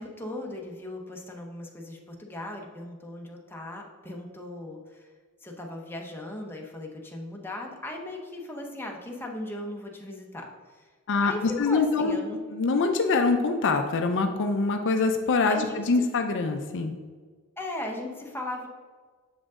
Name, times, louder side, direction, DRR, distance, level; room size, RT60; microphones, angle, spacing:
voice 1, 0.0-5.1 5.4-10.9 11.2-12.4 15.5-15.8 17.6-18.7, left 1 dB, 10° left, 0 dB, 0.8 m, -38 dB
voice 2, 11.1-12.2 12.5-16.9, left 4 dB, 55° left, 6 dB, 0.5 m, -24 dB
7.2 x 5.1 x 3.6 m, 1.5 s
head